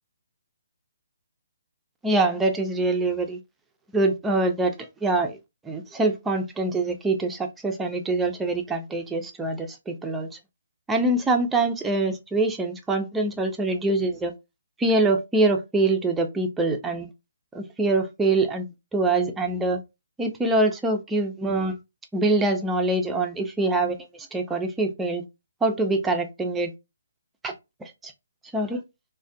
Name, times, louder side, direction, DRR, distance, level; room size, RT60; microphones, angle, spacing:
voice 1, 2.0-3.4 3.9-4.7 5.0-5.4 5.7-10.3 10.9-14.3 14.8-17.1 17.5-19.8 20.2-21.7 22.1-24.0 24.3-25.2 25.6-26.7 27.4-27.5 28.0-28.1 28.5-28.8, right 2 dB, 5° right, 0.3 m, -24 dB
2.3 x 2.1 x 2.5 m
hypercardioid pair, 160°, 0 cm